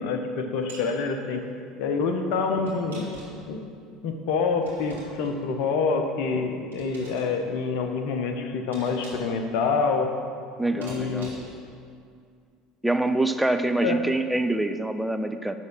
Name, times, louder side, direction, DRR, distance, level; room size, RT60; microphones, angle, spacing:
voice 1, 0.0-1.4 1.8-3.1 3.5-3.7 4.0-10.1 10.7-11.3 13.8-14.0, left 4 dB, 55° left, 5 dB, 0.8 m, -27 dB
sound 1, 0.7-0.9 2.7-3.5 4.6-5.4 6.7-7.3 8.7-9.4 10.8-11.6, right 2 dB, 75° right, 2.1 m, -44 dB
voice 2, 10.6-11.3 12.8-15.6, right 2 dB, 5° right, 8 dB, 0.5 m, -25 dB
10.5 x 3.6 x 6.3 m, 2.3 s
figure-of-eight pair, 65°, 0 cm